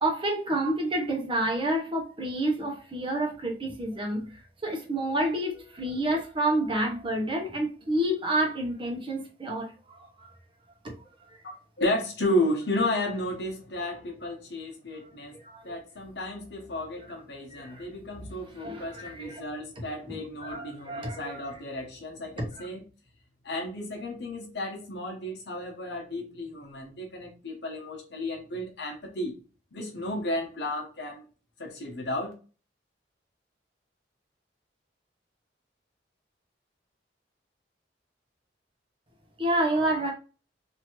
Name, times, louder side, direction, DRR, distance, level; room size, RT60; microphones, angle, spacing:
voice 1, 0.0-10.3 10.8-10.9 15.3-15.8 17.5-17.9 18.6-19.4 20.1-21.4 22.4-22.7 39.4-40.1, right 1 dB, 30° right, 0.8 m, -29 dB
voice 2, 11.4-15.3 15.6-22.8 23.4-29.4 29.7-31.2 31.6-32.3, left 1 dB, 70° left, 1.0 m, -33 dB
3.0 x 2.7 x 2.9 m
head